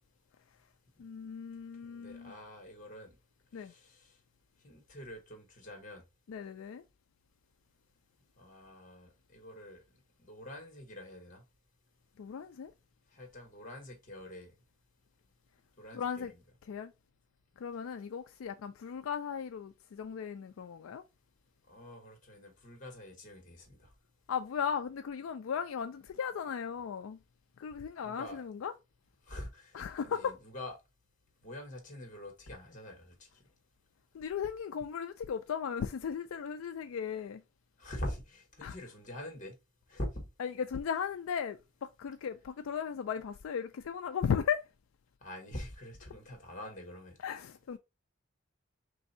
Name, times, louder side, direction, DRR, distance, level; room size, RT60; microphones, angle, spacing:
voice 1, 1.0-2.3 3.5-3.7 6.3-6.8 12.2-12.7 15.9-16.3 16.7-16.9 17.6-21.0 24.3-27.2 27.6-28.7 29.7-30.3 34.1-37.4 38.6-38.8 40.4-44.6 47.2-47.8, left 7 dB, 80° left, 0.4 m, -36 dB
voice 2, 1.8-3.2 3.6-4.1 4.6-6.0 8.4-9.8 10.2-11.4 13.1-14.5 15.8-16.4 21.7-23.9 28.0-28.4 29.3-29.8 30.0-30.7 31.4-33.3 37.8-39.6 39.9-40.3 45.2-47.2, left 1 dB, 40° left, 1.5 m, -45 dB
3.4 x 2.7 x 4.1 m
head